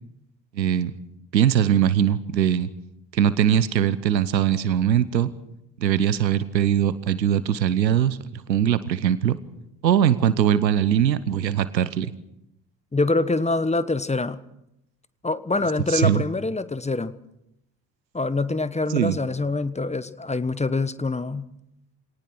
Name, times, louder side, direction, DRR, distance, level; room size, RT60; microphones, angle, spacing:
voice 1, 0.6-0.9 1.3-2.7 3.1-5.3 5.8-8.2 8.5-9.4 9.8-12.1 15.9-16.2 18.9-19.1, right 10 dB, 85° right, 16 dB, 1.0 m, -21 dB
voice 2, 12.9-14.4 15.2-17.1 18.1-21.5, left 3 dB, 15° left, 15 dB, 1.2 m, -25 dB
23.5 x 18.5 x 6.2 m, 0.82 s
figure-of-eight pair, 50°, 49 cm